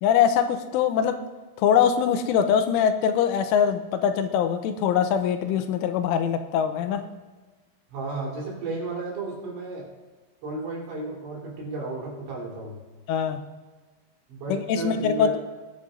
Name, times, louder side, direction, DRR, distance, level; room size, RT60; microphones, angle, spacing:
voice 1, 0.0-1.2 1.6-7.0 13.1-13.4 14.5-15.3, left 8 dB, 85° left, 8 dB, 3.1 m, -22 dB
voice 2, 7.9-9.9 10.4-12.8 14.3-15.4, right 3 dB, 65° right, -4 dB, 5.8 m, -33 dB
20.0 x 10.5 x 2.6 m, 1.3 s
omnidirectional pair, 5.7 m